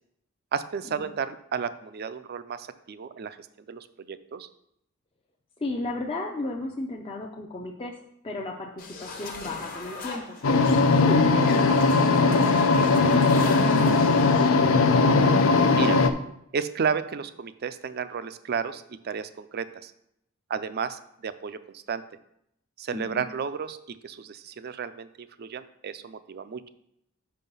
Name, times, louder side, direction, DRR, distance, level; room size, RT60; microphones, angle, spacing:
voice 1, 0.5-3.4 3.7-4.5 15.7-16.0 16.5-19.9 20.5-22.0 22.8-23.8 24.0-26.7, right 6 dB, 50° right, 13 dB, 0.4 m, -32 dB
voice 2, 5.6-8.0 8.2-10.4 10.9-15.1 22.9-23.2, left 2 dB, 25° left, -1 dB, 0.5 m, -34 dB
sound 1, 8.8-14.5, left 3 dB, 45° left, 1.0 m, -40 dB
sound 2, 10.4-16.1, left 3 dB, 80° left, 0.5 m, -19 dB
Brass instrument, 10.8-15.2, right 2 dB, 75° right, 0.8 m, -38 dB
5.5 x 5.2 x 5.4 m, 0.76 s
head